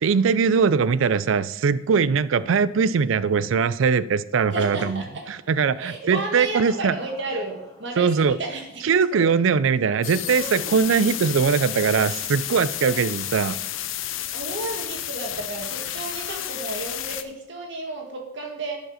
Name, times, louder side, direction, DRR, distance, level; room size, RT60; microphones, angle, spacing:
voice 1, 0.0-5.0 5.3-6.9 8.0-8.4 8.8-13.6, right 6 dB, 80° right, 17 dB, 0.4 m, -21 dB
voice 2, 4.5-5.2 5.8-8.6 9.1-9.3 12.8-13.0 14.3-18.8, right 2 dB, 65° right, 1 dB, 1.7 m, -32 dB
sound 1, 4.7-5.6 6.3-8.1 10.1-11.6, left 2 dB, 20° left, 0.9 m, -45 dB
sound 2, 10.0-17.2, left 12 dB, 85° left, 0.6 m, -31 dB
11.5 x 5.3 x 5.0 m, 0.87 s
head